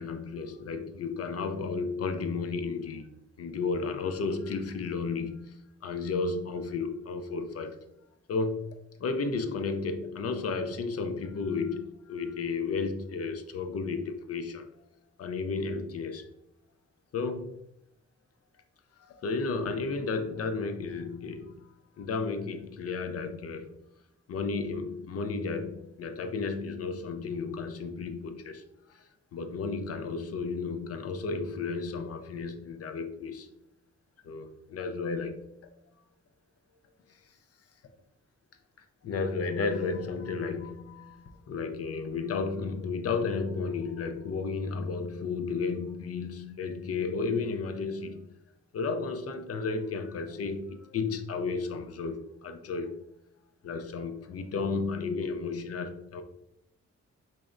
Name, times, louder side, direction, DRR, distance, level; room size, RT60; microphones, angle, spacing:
voice 1, 0.0-3.1 3.4-7.8 8.3-14.7 15.2-16.3 17.1-17.6 19.0-21.7 22.0-23.8 24.3-28.6 28.9-33.5 34.2-35.5 39.0-48.3 48.7-53.0 53.6-56.2, left 4 dB, 55° left, 0.4 m, -33 dB
4.1 x 3.1 x 2.4 m
wide cardioid pair, 155°, 29 cm